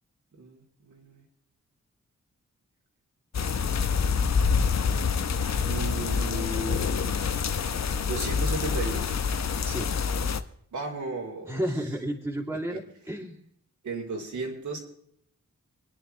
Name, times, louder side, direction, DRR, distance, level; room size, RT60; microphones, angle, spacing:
voice 1, 0.4-1.2 5.6-6.8 8.1-9.0 10.7-11.6 12.7-12.8 13.8-14.8, right 3 dB, 85° right, -1 dB, 3.6 m, -34 dB
sound 1, 3.3-10.4, left 6 dB, 65° left, 0.9 m, -26 dB
voice 2, 11.5-13.4, right 1 dB, 10° right, -1 dB, 3.0 m, -32 dB
26.5 x 10.5 x 3.2 m, 0.69 s
wide cardioid pair, 145°, 29 cm